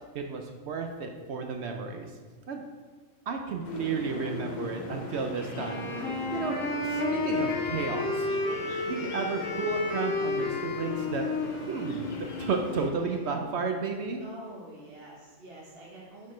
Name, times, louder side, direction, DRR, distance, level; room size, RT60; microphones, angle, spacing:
voice 1, 0.1-2.1 2.5-2.6 3.3-5.9 6.3-6.6 6.8-8.3 8.9-11.3 11.7-14.2, right 4 dB, 65° right, 4 dB, 0.7 m, -32 dB
sound 1, 3.6-12.9, left 3 dB, 45° left, 0.6 m, -40 dB
Wind instrument woodwind instrument, 5.5-13.4, left 3 dB, 75° left, 1.3 m, -32 dB
voice 2, 14.2-16.3, right 1 dB, 50° right, -5 dB, 1.1 m, -46 dB
8.3 x 4.3 x 3.1 m, 1.4 s
omnidirectional pair, 1.4 m